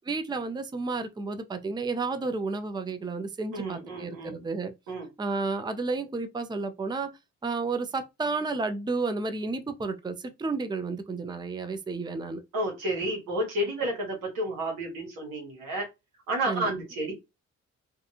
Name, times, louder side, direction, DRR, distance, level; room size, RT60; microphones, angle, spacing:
voice 1, 0.1-4.7 5.2-7.1 7.4-12.4 16.5-16.6, right 3 dB, 15° right, 0.5 m, -31 dB
voice 2, 3.5-4.4 4.9-5.1 12.5-15.9 16.3-17.1, right 1 dB, 85° right, 1.3 m, -31 dB
2.6 x 2.4 x 2.6 m
supercardioid pair, 55°, 33 cm